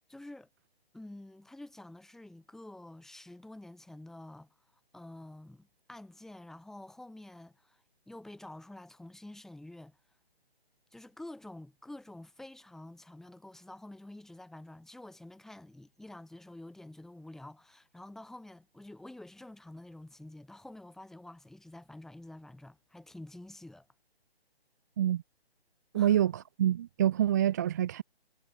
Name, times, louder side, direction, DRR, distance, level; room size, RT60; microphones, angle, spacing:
voice 1, 0.1-0.5 0.9-4.5 4.9-10.0 10.9-23.9 25.9-26.2, left 1 dB, ahead, 2.2 m, -49 dB
voice 2, 25.9-28.0, right 11 dB, 15° right, 0.7 m, -27 dB
figure-of-eight pair, 150°, 32 cm